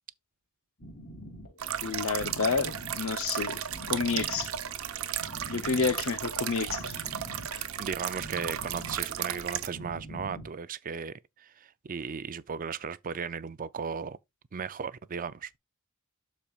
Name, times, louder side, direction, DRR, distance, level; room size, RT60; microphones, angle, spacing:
sound 1, 0.8-10.6, right 1 dB, 50° left, 2.9 m, -46 dB
sound 2, 1.6-9.7, right 9 dB, 65° right, 0.9 m, -35 dB
voice 1, 1.8-3.6 3.9-4.5 5.5-7.0 7.5-7.6, left 5 dB, 65° left, 0.7 m, -30 dB
voice 2, 7.8-14.2 14.5-15.5, right 6 dB, 40° right, 0.5 m, -36 dB
12.0 x 4.4 x 2.4 m
head